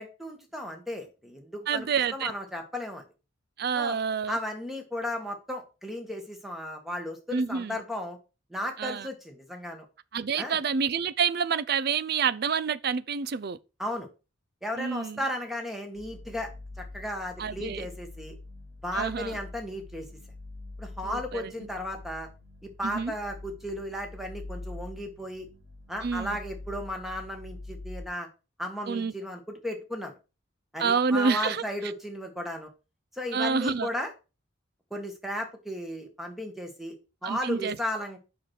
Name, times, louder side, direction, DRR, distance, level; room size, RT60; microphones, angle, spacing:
voice 1, 0.0-3.0 3.7-4.0 4.3-8.2 8.5-9.9 10.4-10.6 13.8-14.1 14.6-16.5 16.8-18.4 18.8-20.1 20.8-22.3 22.8-25.5 25.9-28.3 28.6-30.2 30.7-32.7 33.1-34.1 34.9-37.0 37.2-38.2, left 1 dB, ahead, 1.7 m, -35 dB
voice 2, 1.7-2.3 3.6-4.4 7.3-7.8 8.8-9.1 10.1-13.6 14.8-15.2 17.4-17.9 18.9-19.4 21.0-21.5 22.8-23.1 26.0-26.4 28.9-29.1 30.8-31.6 33.3-33.9 37.2-37.8, right 6 dB, 55° right, 0.5 m, -28 dB
sound 1, 15.9-28.0, left 2 dB, 85° right, 4.0 m, -44 dB
6.2 x 5.9 x 6.4 m
head